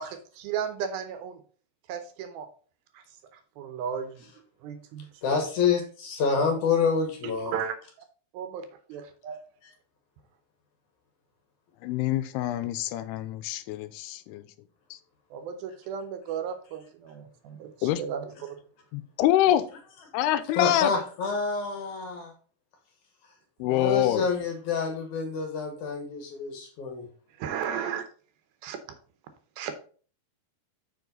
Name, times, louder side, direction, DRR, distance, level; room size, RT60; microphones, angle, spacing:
voice 1, 0.0-1.4 1.9-2.5 2.9-3.0 3.6-4.3 4.6-5.1 7.5-7.8 8.3-9.4 15.3-18.6 27.4-28.0 28.6-28.8 29.6-29.7, right 7 dB, 75° right, 9 dB, 2.5 m, -34 dB
voice 2, 5.2-7.6 9.6-9.7 20.6-22.3 23.6-27.1, left 5 dB, 65° left, 3 dB, 2.2 m, -27 dB
voice 3, 11.8-14.4 14.9-15.0 17.8-18.0 18.9-19.6 20.1-20.9 23.6-24.2, left 13 dB, 90° left, 13 dB, 2.6 m, -25 dB
7.3 x 5.3 x 3.9 m, 0.41 s
omnidirectional pair, 4.5 m